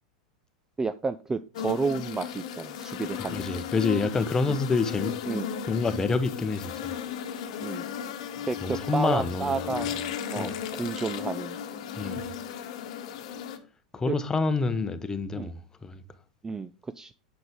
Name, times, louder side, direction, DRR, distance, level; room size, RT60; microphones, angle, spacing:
voice 1, 0.8-3.5 4.5-4.6 5.3-5.5 7.6-7.9 8.5-9.9 10.3-11.6 12.0-12.1 14.1-14.2 15.3-15.5 16.4-17.1, right 4 dB, 15° right, 0.4 m, -31 dB
sound 1, 1.5-13.6, left 8 dB, 60° left, 1.1 m, -35 dB
voice 2, 3.3-5.1 5.7-6.9 8.6-10.0 10.4-10.6 12.0-12.3 13.9-15.5 15.8-16.0, left 4 dB, 15° left, 1.0 m, -28 dB
7.7 x 6.3 x 3.6 m
hypercardioid pair, 90°, 4 cm